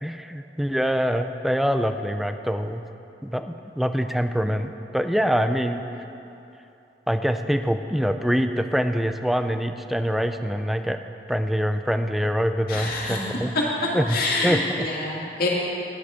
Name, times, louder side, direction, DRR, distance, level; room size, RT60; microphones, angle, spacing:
voice 1, 0.0-2.8 3.2-5.8 7.1-11.0 11.3-13.5 13.9-14.9, equal, ahead, 8 dB, 0.3 m, -25 dB
voice 2, 12.7-13.6 14.1-15.5, left 2 dB, 60° left, -4 dB, 2.1 m, -26 dB
9.7 x 9.4 x 5.0 m, 2.9 s
head